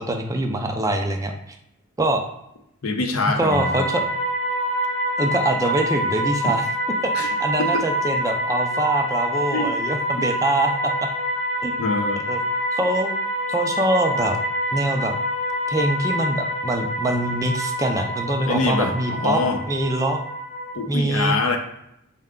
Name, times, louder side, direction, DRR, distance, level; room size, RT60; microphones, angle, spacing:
voice 1, 0.0-1.3 2.0-2.2 3.4-4.0 5.2-6.6 7.0-11.1 11.6-11.9 12.3-12.4 12.7-13.1 13.5-14.4 14.7-15.2 15.7-19.4 19.7-20.2 20.9-21.4, right 1 dB, 15° right, 4 dB, 0.3 m, -24 dB
voice 2, 2.8-3.9 6.4-6.5 7.1-7.3 7.6-7.8 9.5-9.8 11.8-12.3 18.5-19.6 20.7-21.6, left 3 dB, 75° left, 4 dB, 0.6 m, -24 dB
sound 1, 3.5-20.7, equal, 30° left, 0.8 m, -26 dB
4.6 x 2.2 x 3.6 m, 0.78 s
head